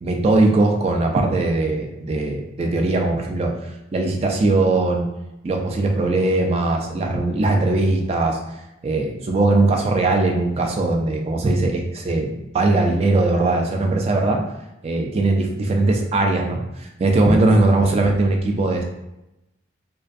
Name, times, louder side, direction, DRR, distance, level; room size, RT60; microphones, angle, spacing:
voice 1, 0.0-5.1 5.4-8.4 8.8-14.4 14.8-18.8, right 2 dB, 35° right, 2 dB, 0.3 m, -20 dB
2.3 x 2.2 x 2.5 m, 0.92 s
head